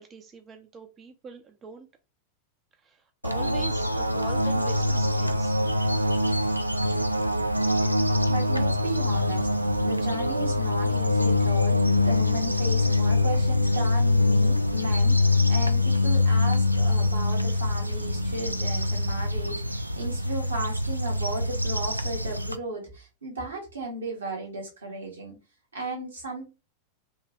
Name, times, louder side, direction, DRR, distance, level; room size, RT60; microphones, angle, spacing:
voice 1, 0.0-1.9 2.8-5.6, right 5 dB, 25° right, 0.5 m, -43 dB
sound 1, 3.2-22.6, left 2 dB, 90° right, 0.3 m, -24 dB
voice 2, 8.3-9.5 9.8-25.4 25.7-26.5, right 2 dB, 75° right, 1.8 m, -35 dB
3.4 x 2.7 x 3.1 m
figure-of-eight pair, 90°, 0 cm